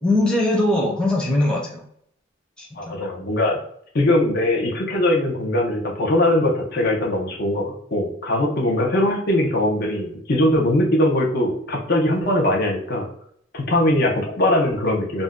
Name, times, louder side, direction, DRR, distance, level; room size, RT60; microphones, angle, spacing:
voice 1, 0.0-1.8 2.6-3.0, left 1 dB, 5° left, -4 dB, 0.7 m, -21 dB
voice 2, 2.8-3.6 3.9-13.1 13.5-15.2, left 1 dB, 55° left, 0 dB, 0.7 m, -21 dB
2.6 x 2.2 x 3.5 m, 0.66 s
head